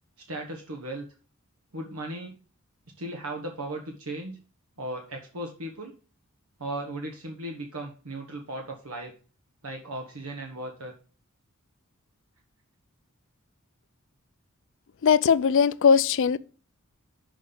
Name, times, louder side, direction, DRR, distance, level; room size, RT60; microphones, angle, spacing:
voice 1, 0.3-1.1 1.7-2.3 3.0-4.3 4.8-5.9 6.6-9.1 9.6-10.9, right 1 dB, 85° right, 1.3 m, -36 dB
voice 2, 15.0-16.4, left 6 dB, 60° left, 0.4 m, -20 dB
6.5 x 5.4 x 6.9 m
head